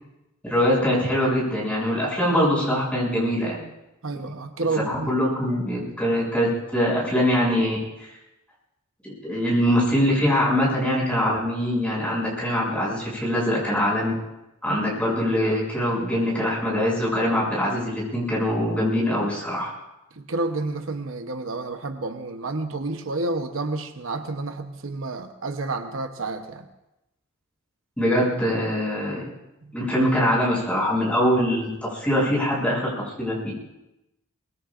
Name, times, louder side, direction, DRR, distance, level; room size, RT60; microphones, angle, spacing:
voice 1, 0.4-3.6 4.7-8.1 9.0-14.1 14.6-19.7 28.0-29.2 29.7-32.9 33.2-33.4, equal, 5° left, -5 dB, 6.9 m, -23 dB
voice 2, 4.0-5.2 14.7-14.8 20.1-26.6 29.6-29.8, right 3 dB, 70° right, 6 dB, 0.9 m, -30 dB
23.5 x 20.5 x 2.5 m, 0.93 s
head